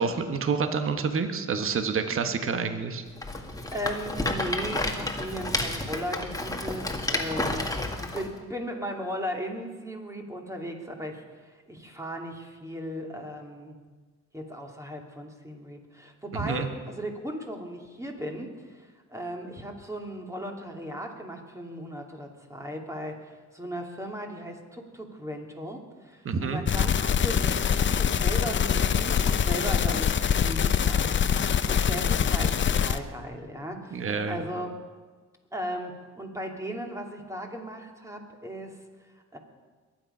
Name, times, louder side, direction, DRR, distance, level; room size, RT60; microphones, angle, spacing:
voice 1, 0.0-3.0 16.4-16.7 26.2-26.6 33.9-34.4, right 5 dB, 45° right, 7 dB, 1.3 m, -28 dB
Rattle, 3.2-8.3, left 2 dB, 10° left, 1.8 m, -31 dB
voice 2, 3.7-13.8 14.3-34.7 35.5-39.4, equal, 10° right, 2 dB, 2.5 m, -37 dB
sound 1, 26.7-33.0, left 7 dB, 40° left, 0.7 m, -24 dB
22.0 x 9.2 x 5.6 m, 1.4 s
cardioid pair, 90°, 30 cm